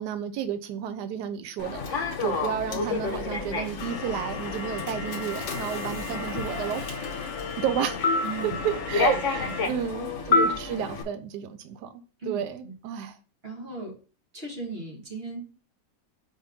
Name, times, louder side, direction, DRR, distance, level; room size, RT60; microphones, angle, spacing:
voice 1, 0.0-6.8 7.6-8.0 8.4-11.9 12.3-13.2, right 9 dB, 75° right, 1.2 m, -31 dB
Human voice / Subway metro underground, 1.6-11.0, left 4 dB, 50° left, 1.1 m, -29 dB
sound 1, 3.8-9.7, left 5 dB, 70° left, 1.4 m, -37 dB
voice 2, 8.2-8.6 8.9-9.8 10.7-10.9 12.2-13.1 13.4-14.0 14.3-15.4, right 3 dB, 35° right, 2.1 m, -38 dB
5.2 x 3.8 x 5.1 m
omnidirectional pair, 2.0 m